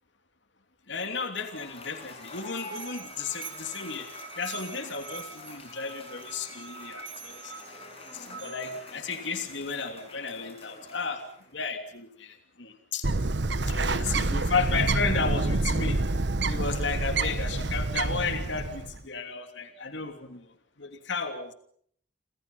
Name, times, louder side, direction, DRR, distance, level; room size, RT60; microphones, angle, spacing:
voice 1, 0.9-7.5 8.1-11.2 11.5-13.1 13.6-16.0 16.4-20.5 20.8-21.5, left 4 dB, 70° left, 7 dB, 3.0 m, -33 dB
Cheering / Applause / Crowd, 1.1-11.6, left 2 dB, 30° left, 7.5 m, -47 dB
Musical instrument, 2.1-9.0, right 6 dB, 75° right, 3.0 m, -45 dB
Bird, 13.0-19.0, right 2 dB, 60° right, 1.1 m, -27 dB
30.0 x 26.5 x 5.6 m, 0.62 s
head